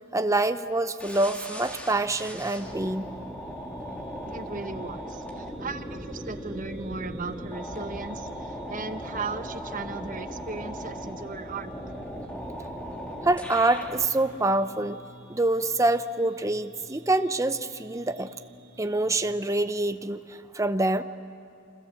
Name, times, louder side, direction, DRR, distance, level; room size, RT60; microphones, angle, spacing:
voice 1, 0.1-3.1 13.2-15.0 15.3-18.3 18.8-21.0, right 2 dB, 15° right, 10 dB, 0.7 m, -26 dB
sound 1, 1.0-14.1, equal, 5° left, 2.2 m, -38 dB
sound 2, 1.6-19.3, equal, 75° right, 3.7 m, -51 dB
voice 2, 4.2-11.7, right 4 dB, 40° right, 8 dB, 1.1 m, -37 dB
28.5 x 26.0 x 7.7 m, 2.6 s
head